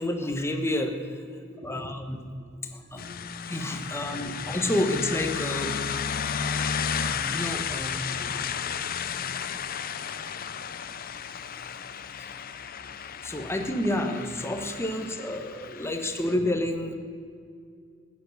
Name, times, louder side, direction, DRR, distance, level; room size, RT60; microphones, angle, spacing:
voice 1, 0.0-1.2 1.6-2.2 2.7-3.0 3.5-5.8 7.0-8.1 12.2-12.3 13.2-16.9, left 1 dB, 10° left, 4 dB, 1.2 m, -29 dB
voice 2, 1.3-1.9 2.5-3.4 3.9-4.6 6.4-6.9 8.1-8.2 12.6-12.8, left 1 dB, 40° right, -3 dB, 4.2 m, -50 dB
sound 1, 3.0-16.4, left 7 dB, 45° left, 0.6 m, -33 dB
14.5 x 10.5 x 6.5 m, 2.3 s
head